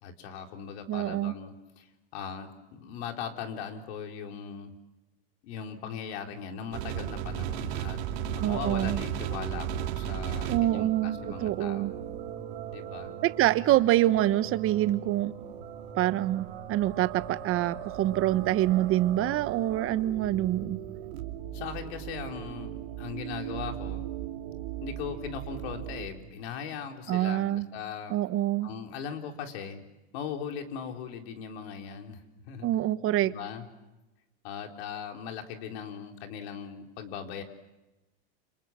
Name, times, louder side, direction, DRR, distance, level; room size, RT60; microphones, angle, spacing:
voice 1, 0.0-4.7 5.4-8.0 8.3-12.0 12.7-13.2 21.5-24.1 24.8-28.1 28.6-29.8 30.1-32.8 33.2-33.6 34.4-37.4, left 7 dB, 70° left, 4 dB, 4.0 m, -39 dB
voice 2, 0.9-1.3 8.4-9.0 10.5-11.9 13.2-15.3 16.0-20.8 27.1-27.7 28.1-28.7 32.6-33.3, right 14 dB, 40° right, 13 dB, 1.3 m, -26 dB
sound 1, 6.7-26.1, right 10 dB, 80° right, 2.9 m, -37 dB
29.0 x 26.0 x 7.5 m, 1.0 s
supercardioid pair, 115°, 32 cm